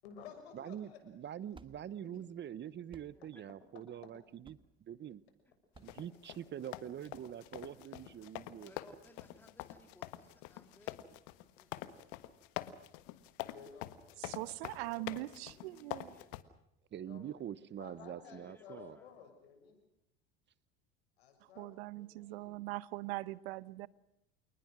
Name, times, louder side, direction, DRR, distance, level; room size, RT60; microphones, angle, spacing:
voice 1, 0.0-1.0 3.2-3.3 5.8-5.9 13.5-15.2 16.9-17.4 17.8-19.8 21.2-21.7 22.0-22.6, left 7 dB, 90° left, 6.7 m, -55 dB
voice 2, 0.5-0.9 1.1-5.2 5.8-8.7 16.9-19.0, right 10 dB, 35° right, 0.9 m, -45 dB
sound 1, 0.9-6.9, right 4 dB, 15° right, 1.4 m, -62 dB
voice 3, 3.1-3.4 8.6-11.0 11.6-12.2 15.2-16.4 18.2-19.1, left 1 dB, 5° left, 3.4 m, -63 dB
sound 2, 5.9-16.4, left 16 dB, 70° left, 1.6 m, -45 dB
voice 4, 14.2-16.1 21.6-23.9, right 19 dB, 80° right, 0.9 m, -42 dB
28.0 x 20.0 x 6.2 m
supercardioid pair, 95°, 30 cm